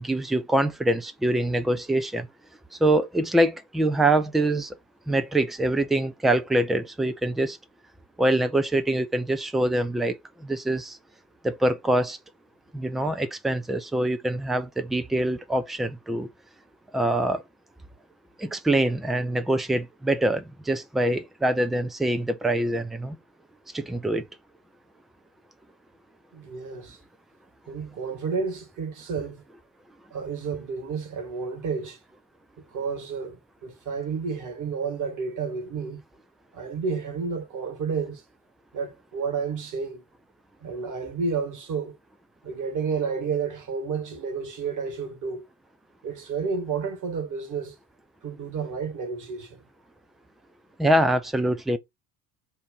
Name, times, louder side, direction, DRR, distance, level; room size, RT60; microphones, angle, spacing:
voice 1, 0.0-2.3 2.8-4.7 5.1-7.6 8.2-11.0 11.4-12.2 12.7-16.3 16.9-17.4 18.4-23.2 23.7-24.2 50.8-51.8, right 1 dB, ahead, 0.3 m, -24 dB
voice 2, 26.3-27.0 27.7-29.4 30.1-32.0 32.6-36.0 36.5-38.2 38.7-40.0 40.6-42.0 42.4-45.4 46.0-47.8 48.2-49.6, right 5 dB, 35° right, 2.0 m, -31 dB
7.8 x 2.6 x 5.5 m
figure-of-eight pair, 60°, 50 cm